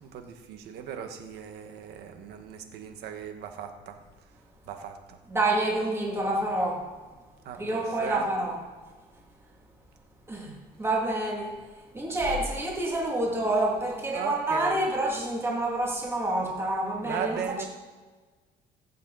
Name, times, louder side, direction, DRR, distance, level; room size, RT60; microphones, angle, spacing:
voice 1, 0.0-4.0 4.7-5.2 7.4-8.3 14.1-14.9 17.0-17.7, right 8 dB, 75° right, 6 dB, 1.5 m, -37 dB
voice 2, 5.3-6.9 7.6-8.6 10.3-11.5 11.9-17.4, right 1 dB, 15° right, -2 dB, 2.8 m, -28 dB
15.0 x 7.5 x 4.2 m, 1.4 s
cardioid pair, 110°, 17 cm